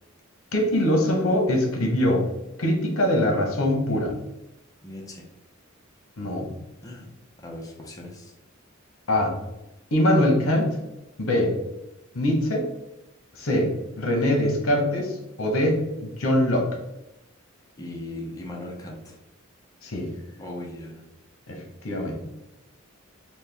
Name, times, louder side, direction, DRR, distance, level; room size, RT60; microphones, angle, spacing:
voice 1, 0.5-2.2 2.6-4.1 6.2-6.5 9.1-9.3 9.9-10.8 11.2-11.5 12.1-12.6 13.3-13.7 14.0-16.6 19.8-20.1 21.5-22.3, left 1 dB, 80° left, 1 dB, 0.9 m, -23 dB
voice 2, 4.8-5.2 6.8-7.1 7.4-8.3 17.8-19.2 20.4-21.0, left 1 dB, 15° left, -2 dB, 0.6 m, -38 dB
4.3 x 2.2 x 3.4 m, 0.93 s
head